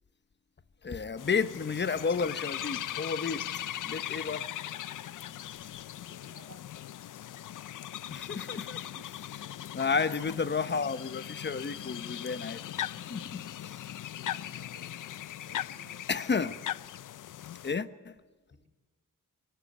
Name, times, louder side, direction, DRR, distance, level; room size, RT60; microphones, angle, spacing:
voice 1, 0.8-3.4 3.8-4.5 8.1-8.9 9.7-12.6 13.1-13.8 16.1-16.5 17.6-18.2, left 5 dB, 35° left, 0.9 m, -32 dB
sound 1, 1.2-17.7, left 12 dB, 75° left, 0.6 m, -39 dB
voice 2, 6.0-6.6 9.0-9.1 14.2-16.2 18.5-18.7, right 4 dB, 60° right, 4.0 m, -57 dB
24.0 x 12.0 x 9.6 m
cardioid pair, 100°, 32 cm